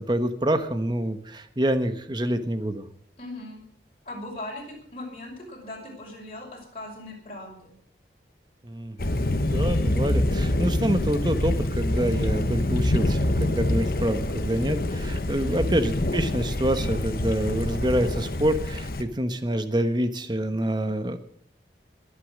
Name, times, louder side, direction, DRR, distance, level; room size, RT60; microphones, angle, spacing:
voice 1, 0.0-2.9 8.6-21.2, right 1 dB, 25° right, 10 dB, 1.1 m, -27 dB
voice 2, 3.2-3.6 4.0-7.7 15.4-15.7, left 1 dB, 35° left, -3 dB, 5.8 m, -39 dB
Thunder, 9.0-19.0, left 1 dB, 55° left, 1.1 m, -26 dB
22.0 x 8.5 x 6.5 m, 0.66 s
head